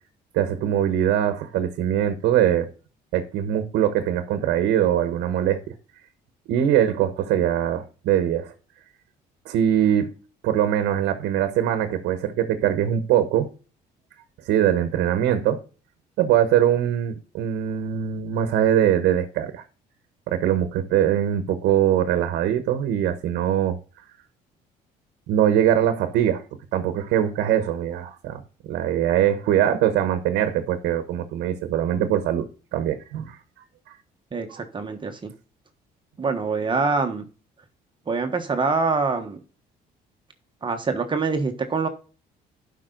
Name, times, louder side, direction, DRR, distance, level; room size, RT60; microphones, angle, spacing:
voice 1, 0.3-2.7 3.1-5.8 6.5-8.5 9.4-10.1 10.4-13.5 14.4-15.6 16.2-19.6 20.3-23.8 25.3-26.4 26.7-28.4 28.7-33.4 33.9-34.0 34.5-34.6, right 10 dB, 85° right, 1.1 m, -22 dB
voice 2, 34.3-35.3 36.2-37.3 38.1-39.4 40.6-41.9, right 4 dB, 30° right, 1.3 m, -25 dB
12.0 x 5.5 x 3.9 m
cardioid pair, 110°, 17 cm